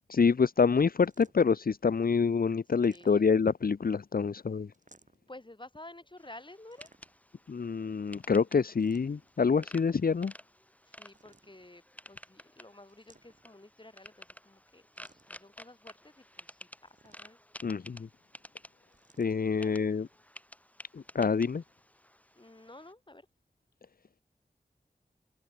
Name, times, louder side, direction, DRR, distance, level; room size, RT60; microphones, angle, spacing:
voice 1, 0.1-4.7 7.5-10.3 17.6-18.1 19.2-20.1 20.9-21.6, left 5 dB, 65° left, 0.8 m, -27 dB
sound 1, 1.0-1.6 2.7-3.6 4.7-5.4 6.7-7.3 8.6-9.4 11.0-11.8 12.9-13.7 15.0-15.5 16.8-17.6 18.9-19.4, right 3 dB, 50° right, 7.6 m, -63 dB
voice 2, 2.8-3.3 5.3-6.9 8.7-8.8 10.8-16.6 17.0-17.4 19.6-19.9 22.4-23.3, left 2 dB, 30° left, 7.9 m, -52 dB
sound 2, 6.2-22.9, equal, 10° left, 5.5 m, -53 dB
cardioid pair, 45°, 16 cm